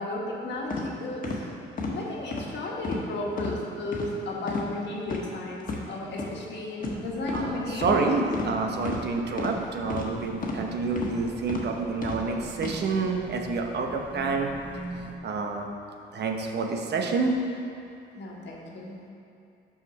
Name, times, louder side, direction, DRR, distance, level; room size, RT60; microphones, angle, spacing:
voice 1, 0.0-1.4 1.9-8.1 18.2-19.0, left 2 dB, 65° left, -2 dB, 1.4 m, -34 dB
sound 1, 0.7-0.8 1.2-1.4 1.8-1.9 2.3-2.5 2.8-3.0 3.4-3.5 3.9-4.1 4.5-4.7 5.0-5.2 5.6-5.8 6.2-6.3 6.8-7.0 7.3-7.5 7.8-8.0 8.3-8.5 8.8-9.0 9.4-9.5 9.9-10.1 10.4-10.6 11.0-11.1 11.5-11.6 12.0-12.2 12.6-12.7, left 3 dB, 45° left, 1.2 m, -32 dB
sound 2, 6.8-15.2, right 2 dB, 10° right, 0.8 m, -44 dB
voice 2, 7.3-14.5 15.2-15.7 16.1-17.4, right 4 dB, 60° right, 3 dB, 0.8 m, -28 dB
5.6 x 5.0 x 6.3 m, 2.6 s
cardioid pair, 90°, 20 cm